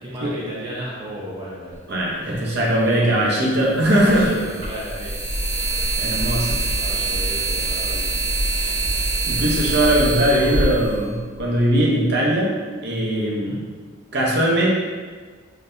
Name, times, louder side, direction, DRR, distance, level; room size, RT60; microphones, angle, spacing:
voice 1, 0.0-1.8 2.2-2.4 2.9-3.4 3.9-5.1 6.6-8.0 10.0-10.9 13.3-13.6, equal, 20° right, -7 dB, 0.6 m, -34 dB
voice 2, 1.9-4.3 6.0-6.6 9.2-12.5 12.8-13.6 14.1-14.7, right 1 dB, 55° right, -4 dB, 0.8 m, -20 dB
sound 1, 2.3-2.4 3.8-11.7, right 2 dB, 75° right, 1.4 m, -24 dB
3.9 x 3.3 x 2.6 m, 1.5 s
head